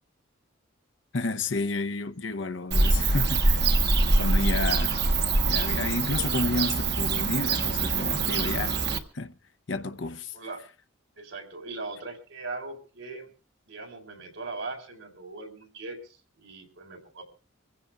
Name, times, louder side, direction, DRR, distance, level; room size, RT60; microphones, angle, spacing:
voice 1, 1.1-3.7 4.2-5.0 5.4-8.8 9.1-9.3 9.7-10.3, left 3 dB, 65° left, 0.9 m, -31 dB
Bird / Cricket, 2.7-9.0, right 3 dB, 55° right, 1.2 m, -24 dB
voice 2, 11.2-13.3 13.7-17.2, right 3 dB, 80° right, 4.1 m, -39 dB
25.5 x 15.5 x 2.5 m
head